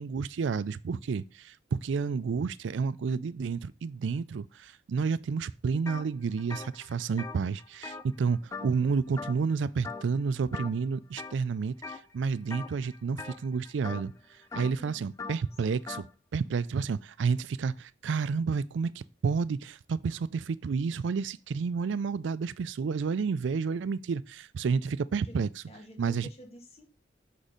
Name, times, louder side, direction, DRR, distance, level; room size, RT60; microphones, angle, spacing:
voice 1, 0.0-14.1 14.5-16.1 16.3-25.5 26.0-26.3, right 5 dB, 75° right, 0.4 m, -30 dB
sound 1, 5.9-6.1 6.4-8.9 9.2-9.5 9.8-10.2 10.5-11.3 11.8-12.1 12.5-16.1, left 4 dB, 15° left, 0.4 m, -41 dB
voice 2, 14.5-15.3 25.2-25.4 25.7-26.8, equal, 35° left, 1.4 m, -50 dB
6.0 x 4.2 x 5.0 m
head